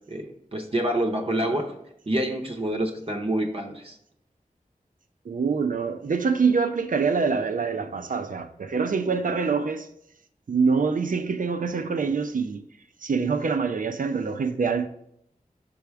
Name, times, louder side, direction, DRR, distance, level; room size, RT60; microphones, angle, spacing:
voice 1, 0.1-1.7 2.1-4.0, right 1 dB, 40° right, 0.8 m, -27 dB
voice 2, 5.2-9.9 10.5-12.6 13.0-14.9, right 5 dB, 65° right, 0.5 m, -25 dB
6.0 x 3.5 x 4.5 m
wide cardioid pair, 50°, 15 cm